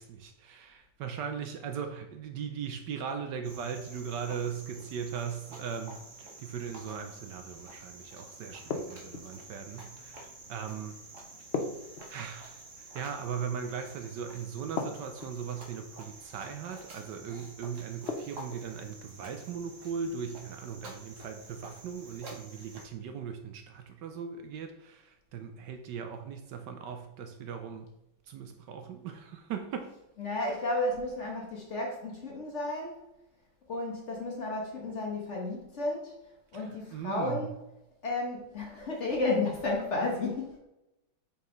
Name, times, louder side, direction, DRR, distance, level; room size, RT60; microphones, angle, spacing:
voice 1, 0.0-10.9 12.1-27.9 28.3-29.9 36.5-37.5, right 7 dB, 75° right, 6 dB, 1.2 m, -39 dB
Cricket, 3.4-22.9, right 2 dB, 45° right, 1.2 m, -49 dB
sound 1, 8.7-9.5 11.5-12.6 14.8-15.5 18.1-18.7, left 4 dB, 80° left, 0.5 m, -36 dB
voice 2, 30.2-33.0 33.7-36.1 36.5-37.5 38.0-40.6, left 2 dB, 45° left, -1 dB, 1.2 m, -32 dB
5.4 x 4.9 x 3.8 m, 0.89 s
omnidirectional pair, 2.1 m